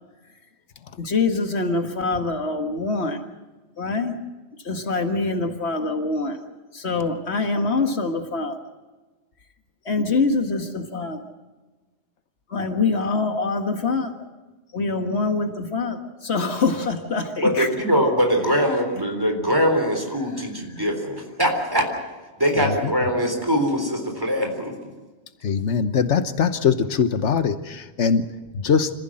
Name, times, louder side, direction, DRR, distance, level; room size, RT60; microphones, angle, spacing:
voice 1, 1.0-3.2 3.8-4.2 4.6-6.4 6.7-8.6 9.9-11.2 12.5-14.1 14.7-17.7, left 3 dB, 70° left, 6 dB, 1.9 m, -24 dB
voice 2, 17.4-21.9 22.4-24.9, equal, 20° right, 3 dB, 3.8 m, -22 dB
voice 3, 22.5-22.9 25.4-28.9, left 6 dB, 85° left, 11 dB, 1.4 m, -22 dB
26.5 x 15.5 x 7.6 m, 1.2 s
omnidirectional pair, 1.2 m